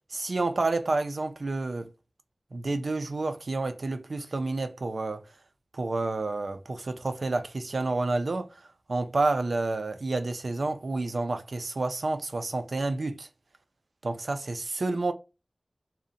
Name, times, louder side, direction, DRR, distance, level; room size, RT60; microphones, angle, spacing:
voice 1, 0.1-1.9 2.5-5.2 5.7-13.3 14.0-15.1, right 2 dB, 80° right, 0.4 m, -29 dB
2.7 x 2.1 x 2.4 m
wide cardioid pair, 45°, 0 cm